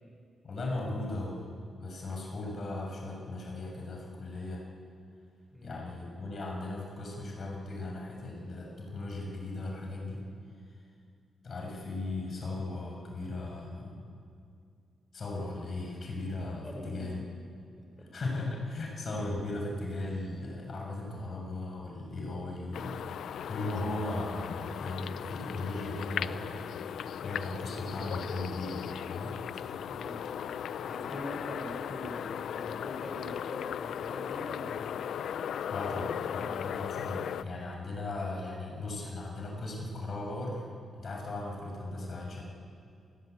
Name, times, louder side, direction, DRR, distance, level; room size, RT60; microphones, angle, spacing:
voice 1, 0.4-1.5 1.8-4.7 5.6-10.2 11.4-14.1 15.1-17.3 18.0-26.5 27.2-29.4 35.7-40.6 40.9-42.4, left 2 dB, 55° left, -1 dB, 7.4 m, -37 dB
voice 2, 16.6-17.3 18.0-18.1 29.9-30.2 30.8-35.0 36.3-36.6, left 1 dB, 15° left, 0 dB, 4.6 m, -43 dB
sound 1, 22.7-37.4, left 9 dB, 80° left, 0.6 m, -37 dB
29.0 x 16.0 x 8.4 m, 2.4 s
cardioid pair, 75°, 0 cm